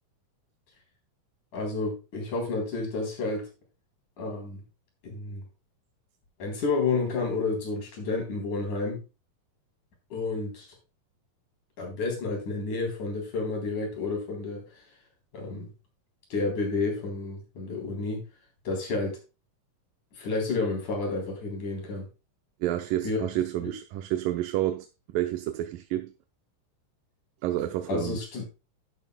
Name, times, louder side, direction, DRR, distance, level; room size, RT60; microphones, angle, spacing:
voice 1, 1.5-3.5 4.2-4.6 5.0-5.4 6.4-9.0 10.1-10.7 11.8-14.6 15.3-15.7 16.3-18.2 18.7-19.2 20.2-22.1 23.0-23.2 23.6-23.7 27.9-28.5, left 3 dB, 65° left, 5.2 m, -30 dB
voice 2, 22.6-26.1 27.4-28.2, right 13 dB, 85° right, 2.4 m, -29 dB
11.5 x 11.0 x 2.3 m
omnidirectional pair, 3.8 m